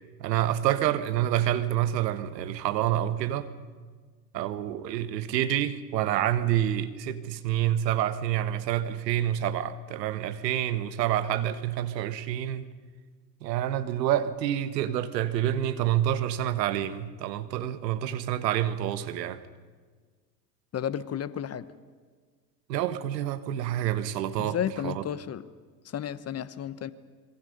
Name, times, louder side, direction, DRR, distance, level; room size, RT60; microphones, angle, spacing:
voice 1, 0.2-3.5 4.3-12.7 13.4-19.4 22.7-24.6 24.8-25.0, right 12 dB, 75° right, 1.5 m, -28 dB
voice 2, 20.7-21.7 24.4-25.5 25.8-26.9, left 9 dB, 30° left, 1.2 m, -32 dB
26.0 x 22.5 x 5.4 m
hypercardioid pair, 85°, 50 cm